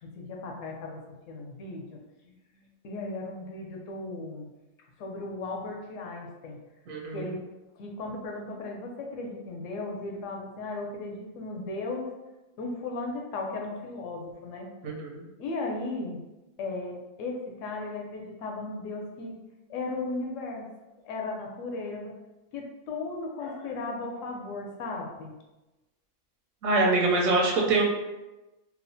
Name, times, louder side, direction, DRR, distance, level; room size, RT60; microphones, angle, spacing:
voice 1, 0.0-4.5 5.0-6.6 7.1-7.4 7.8-12.1 12.6-14.7 15.4-16.2 16.6-19.4 19.7-20.7 21.0-22.1 22.5-25.3, left 3 dB, 70° left, 0 dB, 0.9 m, -36 dB
voice 2, 6.9-7.3 14.8-15.3 26.6-27.8, right 2 dB, 80° right, -1 dB, 1.0 m, -24 dB
3.0 x 2.0 x 2.6 m, 1.0 s
omnidirectional pair, 1.4 m